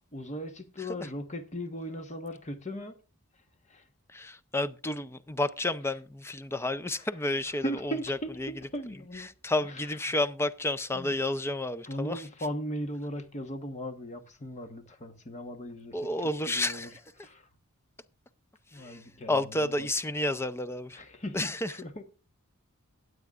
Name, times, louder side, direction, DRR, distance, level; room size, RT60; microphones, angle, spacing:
voice 1, 0.1-2.9 3.7-3.8 7.6-9.3 9.7-9.8 10.9-11.1 11.8-16.1 16.5-16.9 17.2-17.5 18.7-19.9 20.9-22.0, equal, 30° left, 1.2 m, -38 dB
voice 2, 4.1-8.5 9.2-12.2 15.9-17.0 18.7-19.0 19.3-21.0 21.3-21.7, left 2 dB, 10° left, 0.5 m, -31 dB
21.5 x 8.0 x 2.4 m
head